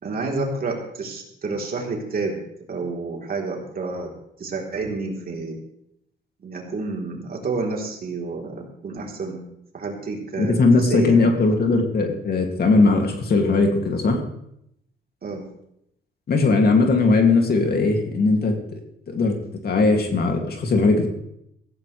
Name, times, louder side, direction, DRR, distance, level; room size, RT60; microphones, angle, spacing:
voice 1, 0.0-2.4 2.7-4.1 4.4-5.6 6.4-9.4 9.7-11.4 15.2-15.4, right 3 dB, 50° right, 0 dB, 3.7 m, -29 dB
voice 2, 10.4-14.2 16.3-18.8 19.1-19.4 19.6-21.1, left 3 dB, 50° left, 3 dB, 2.6 m, -19 dB
16.5 x 15.0 x 3.4 m, 0.77 s
cardioid pair, 90°, 20 cm